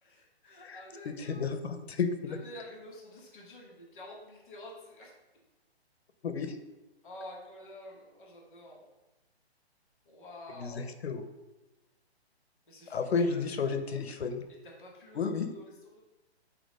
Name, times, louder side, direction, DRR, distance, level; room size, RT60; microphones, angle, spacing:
voice 1, 0.0-1.4 2.3-5.1 7.0-8.8 10.0-10.9 12.6-13.4 13.7-13.8 14.6-16.0, left 1 dB, 5° left, -14 dB, 0.5 m, -49 dB
voice 2, 0.6-2.1 6.2-6.6 10.6-11.2 12.9-14.4 15.1-15.5, left 5 dB, 70° left, 8 dB, 0.9 m, -32 dB
8.2 x 3.0 x 5.2 m, 1.1 s
hypercardioid pair, 170°, 33 cm